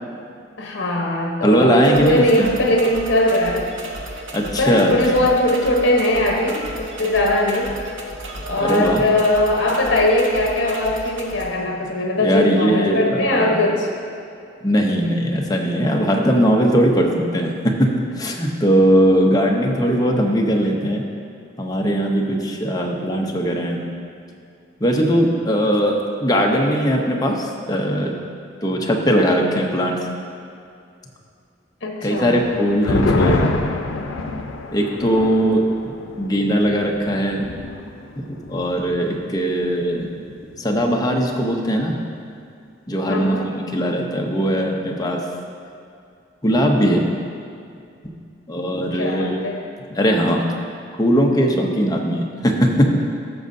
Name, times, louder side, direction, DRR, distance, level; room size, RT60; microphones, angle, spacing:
voice 1, 0.6-3.7 4.5-7.8 8.5-13.9 31.8-32.4 43.0-43.5 48.9-49.6, left 1 dB, 60° left, 0 dB, 1.0 m, -20 dB
voice 2, 1.4-2.5 4.3-4.9 8.6-9.0 12.2-13.5 14.6-17.9 18.2-21.0 21.6-23.8 24.8-28.1 28.6-30.0 32.0-33.5 34.7-35.9 36.2-37.5 38.2-40.1 40.6-42.0 42.9-45.2 46.4-47.1 48.5-49.4 49.9-50.4 51.0-52.9, equal, 20° left, 0 dB, 0.8 m, -19 dB
sound 1, 1.8-11.4, right 1 dB, 70° right, 1.0 m, -34 dB
sound 2, 32.3-39.2 39.5-39.6 40.0-40.5, left 2 dB, 85° left, 0.6 m, -26 dB
14.0 x 6.4 x 2.7 m, 2.4 s
head